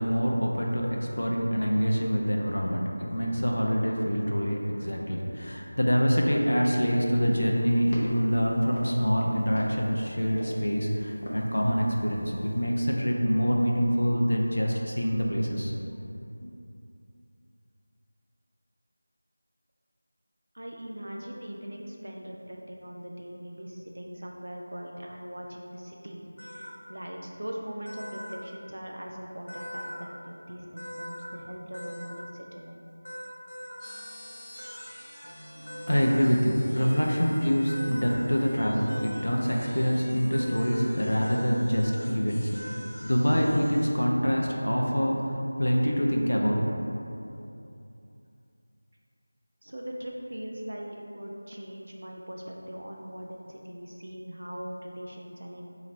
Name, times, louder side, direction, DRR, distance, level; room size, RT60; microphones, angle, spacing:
voice 1, 0.0-15.7 16.4-16.5 35.6-46.7, equal, 75° left, -1 dB, 0.5 m, -25 dB
sound 1, 7.3-12.6, equal, 45° left, 0.7 m, -42 dB
voice 2, 20.5-32.8 49.6-55.7, equal, 65° right, -1 dB, 0.4 m, -40 dB
sound 2, 26.4-26.7 27.8-28.4 29.5-30.0 30.8-31.3 31.7-32.2 33.0-33.8 34.6-34.8 35.7-36.1 37.7-38.2 38.9-39.3 40.3-40.8 41.2-41.4 41.7-42.0 42.5-43.1, equal, 60° left, 1.2 m, -41 dB
sound 3, 33.8-43.9, equal, 10° left, 0.7 m, -49 dB
2.9 x 2.5 x 4.2 m, 2.8 s
figure-of-eight pair, 170°, 0 cm